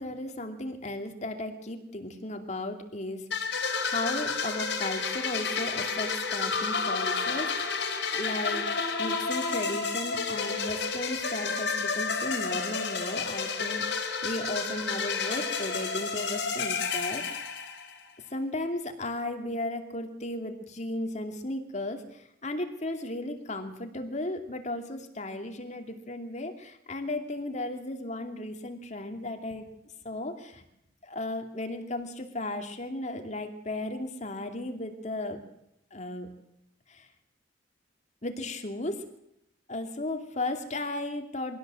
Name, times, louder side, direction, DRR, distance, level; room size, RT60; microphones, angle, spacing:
voice 1, 0.0-3.4 3.8-7.8 8.1-8.7 9.0-17.5 18.3-29.7 30.0-30.6 31.0-35.4 35.9-36.3 36.9-37.1 38.2-39.1 39.7-41.6, left 2 dB, 40° left, 5 dB, 2.6 m, -35 dB
sound 1, 3.3-18.1, left 5 dB, 70° left, 4.0 m, -31 dB
23.5 x 16.5 x 7.7 m, 0.78 s
head